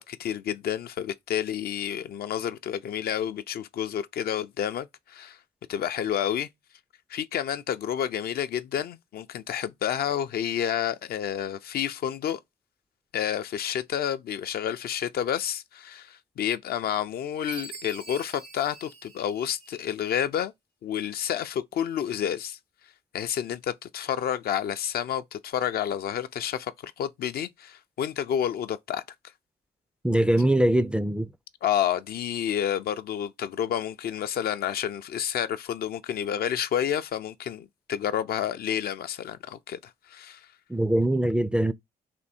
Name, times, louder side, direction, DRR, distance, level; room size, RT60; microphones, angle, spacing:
voice 1, 0.0-5.4 5.7-6.5 7.1-12.4 13.1-20.5 20.8-22.6 23.1-29.0 31.6-40.5, left 9 dB, 60° left, 0.5 m, -30 dB
Chime, 17.5-20.0, right 4 dB, 90° right, 0.8 m, -44 dB
voice 2, 30.0-31.3 40.7-41.7, right 1 dB, 5° right, 0.3 m, -22 dB
3.5 x 2.7 x 4.2 m
supercardioid pair, 55°, 18 cm